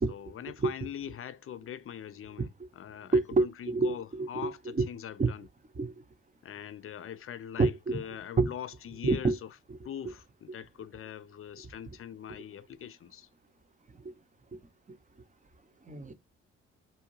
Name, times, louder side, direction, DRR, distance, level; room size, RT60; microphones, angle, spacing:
voice 1, 0.1-5.5 6.4-9.5 9.8-13.3, left 9 dB, 45° left, 0.5 m, -42 dB
voice 2, 3.1-4.5 4.7-4.8 5.2-5.3 5.8-5.9 7.6-8.0 8.4-8.5 9.0-9.4 15.9-16.1, right 3 dB, 25° right, 0.8 m, -27 dB
2.7 x 2.3 x 3.1 m
hypercardioid pair, 50°, 30 cm